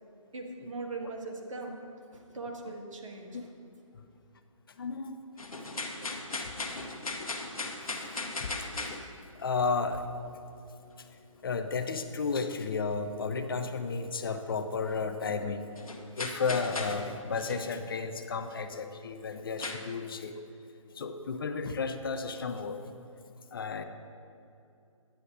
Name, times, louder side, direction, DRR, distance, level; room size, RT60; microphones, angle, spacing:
voice 1, 0.3-1.8 2.1-3.5, right 3 dB, 65° right, 0 dB, 1.4 m, -40 dB
voice 2, 4.7-5.2 6.3-6.5 6.8-6.9 7.2-7.3 7.8-9.1 9.4-10.1 11.0-11.1 11.4-15.7 16.2-20.4 20.9-22.8 23.5-23.8, left 4 dB, 40° left, 8 dB, 0.4 m, -33 dB
sound 1, 5.4-9.4 14.2-14.3 14.9-15.0 15.8-17.1 17.4-17.7 18.8-18.9 19.6-19.8, left 2 dB, 90° left, 1.0 m, -37 dB
9.9 x 9.1 x 2.5 m, 2.6 s
figure-of-eight pair, 150°, 18 cm